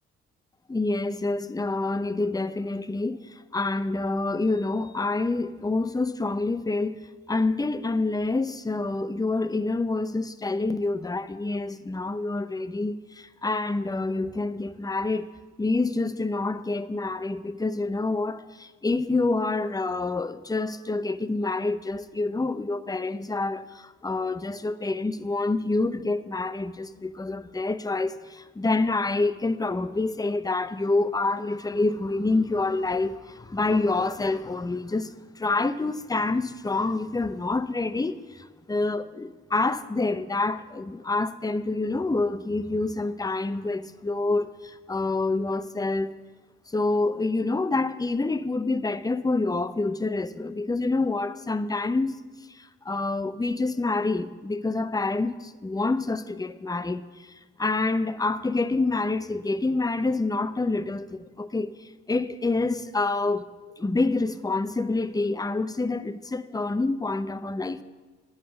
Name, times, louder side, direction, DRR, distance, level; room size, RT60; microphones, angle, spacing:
voice 1, 0.7-3.2 3.5-7.0 7.3-15.3 15.6-46.1 46.7-52.2 52.6-57.0 57.6-61.7 62.1-63.4 63.8-67.8, left 3 dB, 10° left, 0.7 m, -27 dB
10.5 x 8.3 x 7.0 m
hypercardioid pair, 45°, 30 cm